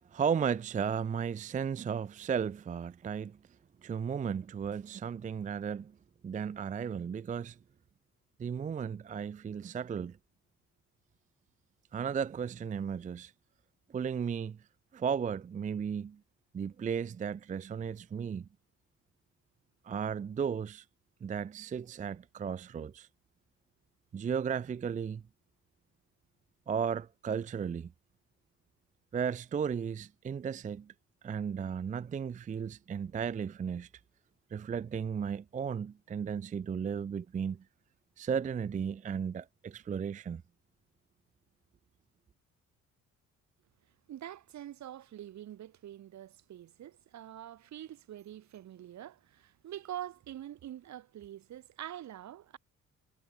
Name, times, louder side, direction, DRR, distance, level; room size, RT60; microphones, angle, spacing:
voice 1, 0.1-3.4 3.8-6.0 6.2-7.6 8.4-10.2 11.9-13.3 13.9-14.6 14.9-16.2 16.5-18.5 19.8-20.9 21.2-23.1 24.1-25.2 26.7-27.9 29.1-30.9 31.2-33.9 34.5-37.6 38.2-40.4, right 7 dB, 25° right, 0.4 m, -35 dB
voice 2, 44.1-52.6, right 12 dB, 65° right, 1.6 m, -45 dB
cardioid pair, 90°, 30 cm